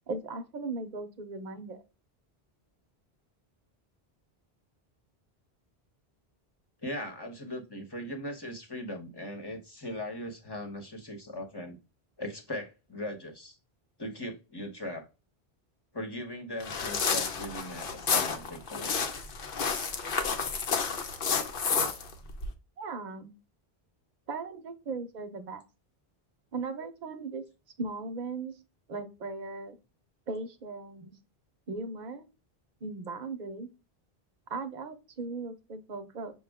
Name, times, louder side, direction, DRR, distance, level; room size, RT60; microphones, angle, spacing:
voice 1, 0.1-1.8 22.8-23.3 24.3-25.6 26.5-27.4 27.8-28.5 28.9-29.8 30.3-31.1 31.7-32.3 32.8-33.7 34.5-36.3, right 3 dB, 50° right, 6 dB, 0.8 m, -37 dB
voice 2, 6.8-11.8 12.2-13.6 14.0-15.1 15.9-19.0, left 1 dB, 25° left, 4 dB, 1.0 m, -39 dB
sound 1, 16.6-22.5, left 5 dB, 60° left, 0.9 m, -30 dB
6.2 x 2.3 x 3.4 m, 0.28 s
omnidirectional pair, 1.0 m